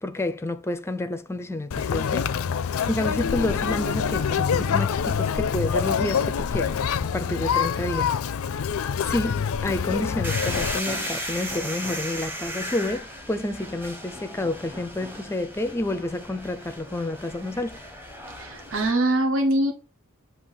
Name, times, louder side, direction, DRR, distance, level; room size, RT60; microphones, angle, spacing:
voice 1, 0.0-2.3 2.9-6.8 7.1-8.1 9.0-17.8, left 1 dB, 10° left, 0.4 m, -29 dB
Conversation, 1.7-10.8, left 7 dB, 75° left, 0.4 m, -26 dB
sound 1, 10.2-18.9, equal, 10° right, 0.9 m, -35 dB
voice 2, 18.4-19.7, right 1 dB, 65° right, 1.1 m, -23 dB
6.9 x 2.9 x 5.6 m
head